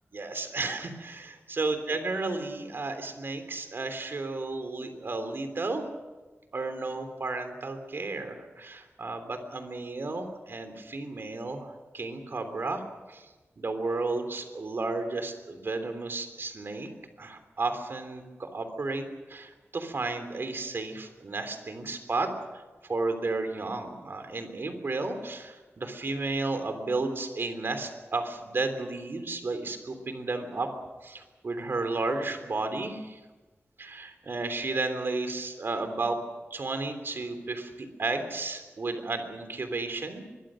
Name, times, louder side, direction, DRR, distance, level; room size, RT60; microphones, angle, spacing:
voice 1, 0.1-5.8 6.5-12.8 13.1-13.3 13.6-16.9 17.2-30.7 31.0-33.2 33.8-36.2 36.5-37.7 38.0-40.2, right 3 dB, 55° right, 8 dB, 3.3 m, -33 dB
24.5 x 22.0 x 6.4 m, 1.2 s
wide cardioid pair, 125°, 5 cm